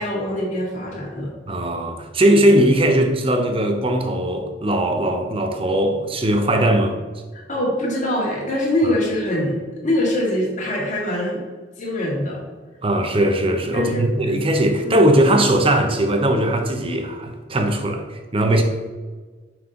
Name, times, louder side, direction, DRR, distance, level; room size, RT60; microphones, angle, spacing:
voice 1, 0.0-1.3 7.3-11.4 11.8-12.4 13.7-14.0 14.8-15.0, left 1 dB, 45° left, -4 dB, 2.0 m, -23 dB
voice 2, 1.5-7.0 12.8-18.6, right 1 dB, 30° right, 5 dB, 0.8 m, -19 dB
6.0 x 5.5 x 3.8 m, 1.4 s
head